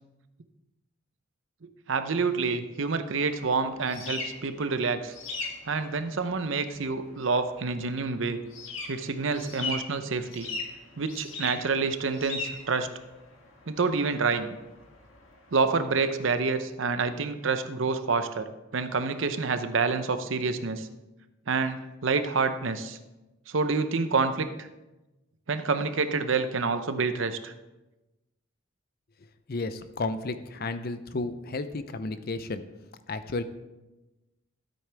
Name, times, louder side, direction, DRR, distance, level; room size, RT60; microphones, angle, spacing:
voice 1, 1.6-5.1 5.7-8.4 8.9-10.5 11.0-12.9 13.7-14.5 15.5-20.9 21.5-23.0 23.5-24.7 25.5-27.5, right 4 dB, 65° right, 10 dB, 0.7 m, -28 dB
sound 1, 3.2-16.4, left 3 dB, 75° left, 1.8 m, -40 dB
voice 2, 29.5-32.6 33.1-33.4, left 3 dB, 50° left, 12 dB, 0.6 m, -32 dB
13.0 x 8.4 x 3.4 m, 1.0 s
head